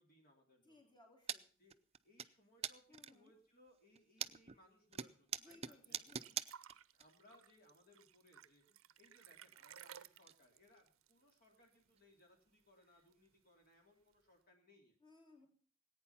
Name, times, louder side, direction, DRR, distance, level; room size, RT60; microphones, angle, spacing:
voice 1, 0.0-0.9 1.6-1.8 2.0-6.0 6.9-15.0, left 1 dB, 45° left, 1 dB, 2.9 m, -68 dB
voice 2, 0.6-1.5 2.9-3.3 5.4-6.3 15.0-15.5, left 2 dB, 20° left, 2 dB, 3.3 m, -64 dB
sound 1, 1.3-1.4 1.7-2.3 2.6-3.3 3.8-4.6 4.9-7.0 7.3-7.4 8.7-8.8 9.0-10.0 10.2-10.3 10.8-10.9 11.3-11.4 12.0-12.1 13.2-13.3, right 8 dB, 30° right, 0.6 m, -44 dB
sound 2, 5.5-11.9 12.2-12.3 12.6-13.3 14.1-14.2, right 9 dB, 65° right, 0.7 m, -59 dB
19.0 x 9.2 x 5.7 m, 0.42 s
head